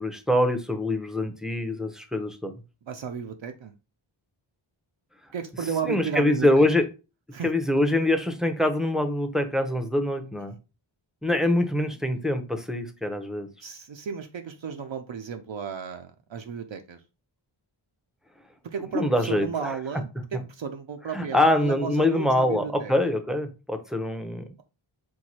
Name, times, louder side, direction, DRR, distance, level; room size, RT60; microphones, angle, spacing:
voice 1, 0.0-2.5 5.8-6.9 7.4-10.5 11.2-13.5 18.9-19.7 21.1-24.5, left 1 dB, ahead, 7 dB, 0.6 m, -24 dB
voice 2, 2.8-3.7 5.3-6.7 7.3-7.5 13.6-17.0 18.6-22.9, right 6 dB, 65° right, 6 dB, 0.5 m, -33 dB
4.6 x 2.2 x 4.2 m, 0.30 s
wide cardioid pair, 50°, 50 cm